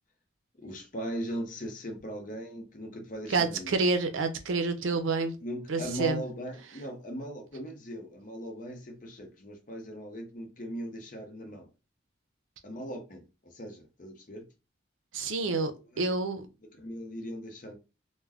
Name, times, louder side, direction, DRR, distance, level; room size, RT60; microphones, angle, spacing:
voice 1, 0.6-3.7 5.4-11.7 12.6-14.4 15.4-15.6 15.9-16.1 16.8-17.8, equal, 40° left, 0.6 m, -39 dB
voice 2, 3.3-5.4 5.7-6.2 15.1-16.5, right 3 dB, 85° right, 0.5 m, -28 dB
2.3 x 2.2 x 3.3 m
head